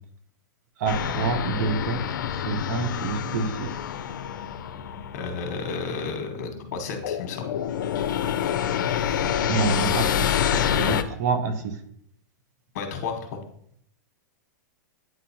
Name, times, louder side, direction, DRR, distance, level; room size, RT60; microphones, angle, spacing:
voice 1, 0.8-3.8 9.4-11.8, right 4 dB, 55° right, 8 dB, 0.8 m, -28 dB
sound 1, 0.9-11.0, left 9 dB, 80° left, 0.5 m, -27 dB
voice 2, 5.1-7.5 12.7-13.4, left 5 dB, 55° left, 4 dB, 1.1 m, -32 dB
8.9 x 3.9 x 2.8 m, 0.68 s
supercardioid pair, 155°, 10 cm